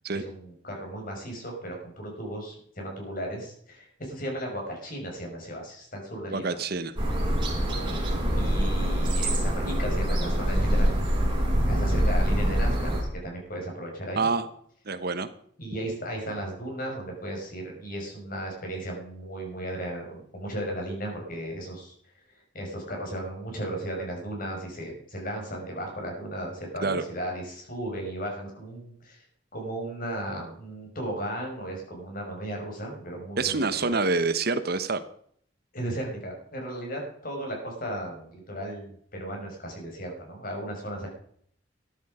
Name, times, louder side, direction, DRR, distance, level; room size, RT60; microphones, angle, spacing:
voice 1, 0.1-6.6 8.3-11.0 11.7-14.3 15.6-21.9 22.3-29.2 29.5-34.0 35.7-41.1, right 1 dB, 50° left, 1 dB, 5.7 m, -35 dB
voice 2, 6.3-6.9 14.2-14.5 14.9-15.3 26.8-27.0 33.4-35.0, right 4 dB, 55° right, 12 dB, 1.1 m, -26 dB
sound 1, 7.0-13.0, equal, 25° right, 4.7 m, -25 dB
14.0 x 10.5 x 5.0 m, 0.63 s
head